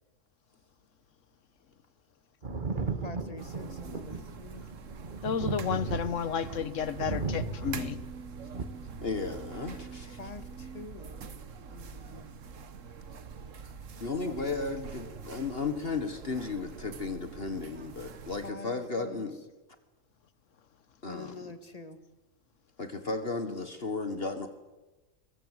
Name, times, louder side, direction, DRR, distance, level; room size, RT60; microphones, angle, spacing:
Thunder, 2.4-9.8 10.9-11.0, right 3 dB, 40° right, 1.7 m, -36 dB
voice 1, 3.0-4.7 8.4-8.8 10.1-11.2 11.7-12.3 14.2-14.5 15.0-15.5 18.4-19.3 21.1-22.0, left 3 dB, 30° left, 2.0 m, -46 dB
sound 1, 3.4-18.5, right 5 dB, 75° right, 1.6 m, -45 dB
voice 2, 5.2-8.0, left 7 dB, 70° left, 1.5 m, -32 dB
voice 3, 9.0-10.2 14.0-19.3 21.0-21.3 22.8-24.5, left 3 dB, 50° left, 1.9 m, -34 dB
24.5 x 22.5 x 8.2 m
omnidirectional pair, 1.4 m